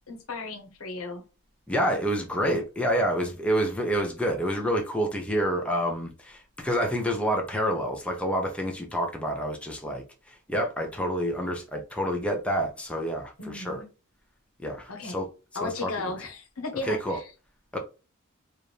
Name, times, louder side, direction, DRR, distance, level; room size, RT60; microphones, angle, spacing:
voice 1, 0.1-1.2 13.4-13.9 14.9-15.2 15.5-17.3, left 3 dB, 80° left, 1.2 m, -35 dB
voice 2, 1.7-13.8 14.6-15.3 15.5-16.1 16.8-17.2 17.7-17.8, equal, 5° left, 0.7 m, -28 dB
4.8 x 2.6 x 3.2 m
head